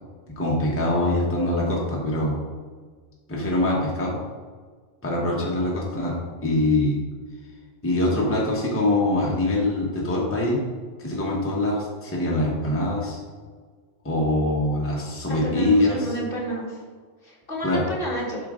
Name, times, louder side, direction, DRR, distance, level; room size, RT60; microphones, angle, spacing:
voice 1, 0.4-2.4 3.3-4.2 5.0-6.2 6.4-7.0 7.8-10.6 11.0-13.2 14.0-16.1 17.6-17.9, left 1 dB, 10° left, -4 dB, 1.2 m, -23 dB
voice 2, 15.3-16.8 17.2-18.4, right 1 dB, 50° left, -2 dB, 1.6 m, -31 dB
8.1 x 4.9 x 3.7 m, 1.5 s
omnidirectional pair, 1.3 m